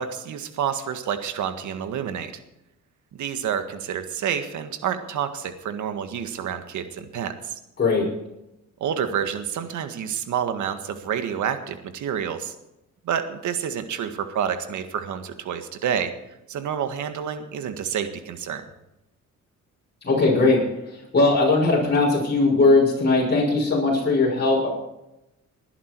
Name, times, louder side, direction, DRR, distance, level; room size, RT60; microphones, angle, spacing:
voice 1, 0.0-2.3 3.1-7.6 8.8-12.6 13.0-16.1 16.5-18.6, right 8 dB, 75° right, 8 dB, 1.8 m, -28 dB
voice 2, 20.0-20.6 20.9-24.7, left 3 dB, 35° left, -4 dB, 6.4 m, -19 dB
20.5 x 11.0 x 4.7 m, 0.92 s
cardioid pair, 90°, 30 cm